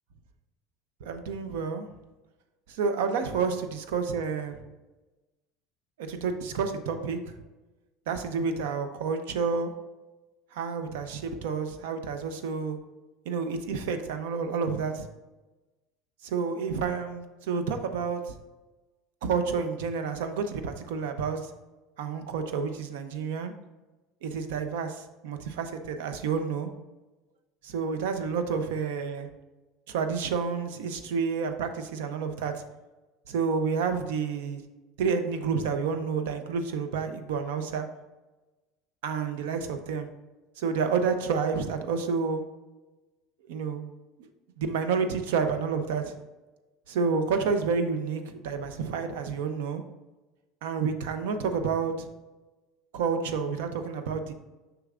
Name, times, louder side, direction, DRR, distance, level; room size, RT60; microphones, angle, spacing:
voice 1, 1.0-1.9 2.7-4.6 6.0-7.3 8.1-9.7 10.5-12.8 13.3-15.1 16.2-18.3 19.2-21.5 22.0-23.5 24.2-26.7 27.6-29.3 29.9-32.6 33.3-34.6 35.0-37.9 39.0-40.1 40.6-42.4 43.5-43.9 44.6-46.1 46.9-49.8 50.6-52.1 52.9-54.3, right 5 dB, 90° right, 8 dB, 0.7 m, -29 dB
6.6 x 5.9 x 2.5 m, 1.1 s
cardioid pair, 145°, 0 cm